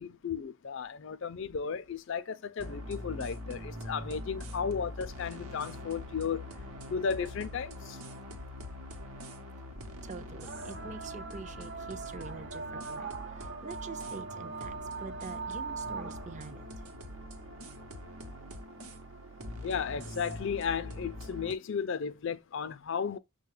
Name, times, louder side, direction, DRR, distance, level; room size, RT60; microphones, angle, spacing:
voice 1, 0.0-6.4 6.9-8.0 19.6-23.2, left 6 dB, 55° left, 0.4 m, -34 dB
sound 1, 2.6-21.5, left 1 dB, 85° right, 0.9 m, -43 dB
sound 2, 8.2-8.3 10.4-16.5 18.0-18.1 18.9-19.0, right 4 dB, 55° right, 0.8 m, -41 dB
voice 2, 10.0-16.6, right 4 dB, 35° right, 0.4 m, -46 dB
6.4 x 2.3 x 3.2 m
head